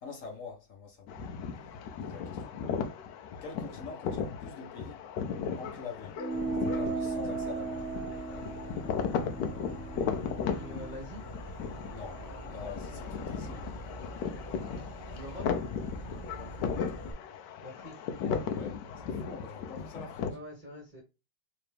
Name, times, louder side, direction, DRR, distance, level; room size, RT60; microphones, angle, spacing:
voice 1, 0.0-1.2 2.0-2.6 3.4-5.0 5.6-6.2 6.6-7.9 11.9-13.7 15.0-15.3 16.4-16.8 18.5-20.4, left 5 dB, 50° left, 1.1 m, -45 dB
sound 1, 1.1-20.3, left 6 dB, 70° left, 1.2 m, -36 dB
sound 2, 6.2-11.0, right 3 dB, 90° right, 0.7 m, -36 dB
Insect / Frog, 6.3-17.1, right 1 dB, 25° left, 0.8 m, -45 dB
voice 2, 10.5-11.2 15.1-15.5 17.6-18.0 20.3-21.0, left 1 dB, 30° right, 1.0 m, -44 dB
3.3 x 3.0 x 3.2 m
omnidirectional pair, 2.1 m